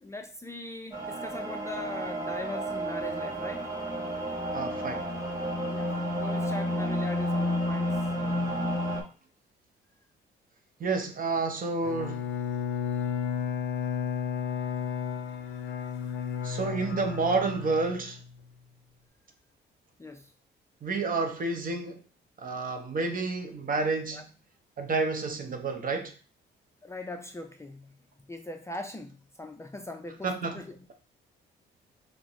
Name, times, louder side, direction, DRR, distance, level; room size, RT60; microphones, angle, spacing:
voice 1, 0.0-3.7 5.7-8.1 20.0-20.3 24.1-24.2 26.8-27.9 28.3-30.8, left 2 dB, 15° left, 0.4 m, -40 dB
sound 1, 0.9-9.0, equal, 15° right, 1.9 m, -31 dB
voice 2, 4.5-5.1 10.8-12.3 16.4-18.2 20.8-22.0 22.4-24.3 24.8-26.1 30.2-30.6, right 3 dB, 45° right, 0.8 m, -30 dB
Bowed string instrument, 11.8-18.4, left 7 dB, 80° left, 0.5 m, -33 dB
6.1 x 2.1 x 3.0 m
cardioid pair, 90°, 20 cm